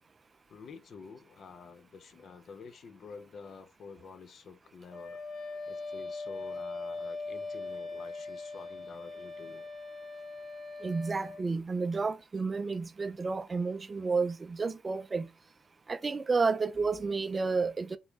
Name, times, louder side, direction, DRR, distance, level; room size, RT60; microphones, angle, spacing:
voice 1, 0.5-5.2 5.7-9.7, left 5 dB, 55° left, 0.5 m, -49 dB
Wind instrument woodwind instrument, 4.9-11.4, left 3 dB, 25° left, 0.9 m, -40 dB
voice 2, 10.8-15.3 15.9-18.0, right 4 dB, 30° right, 0.3 m, -31 dB
3.6 x 2.9 x 3.5 m
cardioid pair, 90°, 0 cm